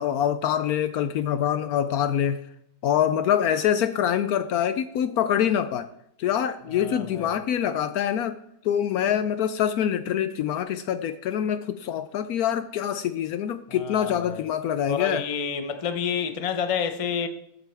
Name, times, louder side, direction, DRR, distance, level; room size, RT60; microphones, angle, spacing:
voice 1, 0.0-2.4 2.8-5.9 6.2-8.4 8.6-15.2, left 9 dB, 70° left, 0.9 m, -25 dB
voice 2, 6.7-7.3 13.7-14.5 14.9-17.3, left 7 dB, 40° left, 0.5 m, -29 dB
14.0 x 8.1 x 3.4 m
omnidirectional pair, 1.8 m